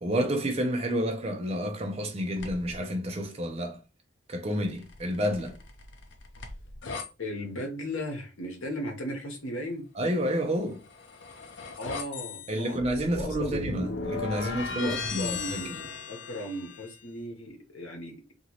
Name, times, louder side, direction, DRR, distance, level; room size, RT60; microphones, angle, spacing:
voice 1, 0.0-3.8 4.3-5.6 10.0-10.8 12.5-15.8, equal, 30° right, 0.5 m, -30 dB
sound 1, 2.4-2.8 4.7-7.1 10.6-17.0, left 4 dB, 65° left, 0.5 m, -37 dB
voice 2, 7.2-9.9 11.8-14.0 14.7-18.2, equal, 80° left, 0.9 m, -37 dB
2.8 x 2.7 x 2.8 m
head